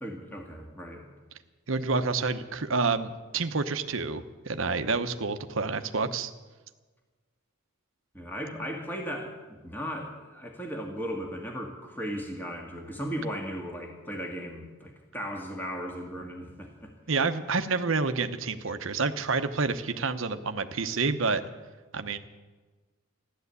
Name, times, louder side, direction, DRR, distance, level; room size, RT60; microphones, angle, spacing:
voice 1, 0.0-1.1 8.1-16.9, equal, 10° left, 0 dB, 1.8 m, -36 dB
voice 2, 1.7-6.3 17.1-21.4 21.9-22.2, right 4 dB, 65° right, 8 dB, 0.9 m, -28 dB
15.0 x 11.5 x 8.3 m, 1.3 s
head